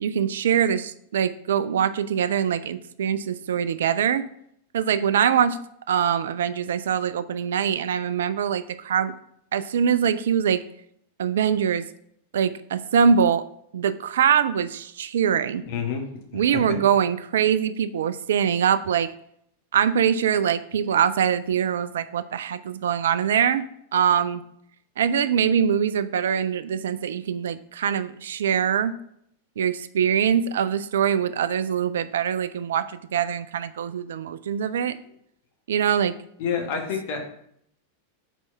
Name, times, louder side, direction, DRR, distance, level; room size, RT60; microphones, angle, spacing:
voice 1, 0.0-4.3 4.7-5.6 5.9-9.1 9.5-10.6 11.2-11.8 12.3-13.4 13.7-15.6 16.3-19.1 19.7-23.6 23.9-24.4 25.0-29.0 29.6-32.9 33.1-35.0 35.7-36.1, right 8 dB, 60° right, 13 dB, 0.3 m, -23 dB
voice 2, 15.6-16.0 16.3-16.4 36.4-37.2, left 6 dB, 50° left, 2 dB, 1.3 m, -28 dB
4.5 x 4.2 x 5.7 m, 0.71 s
figure-of-eight pair, 90°, 0 cm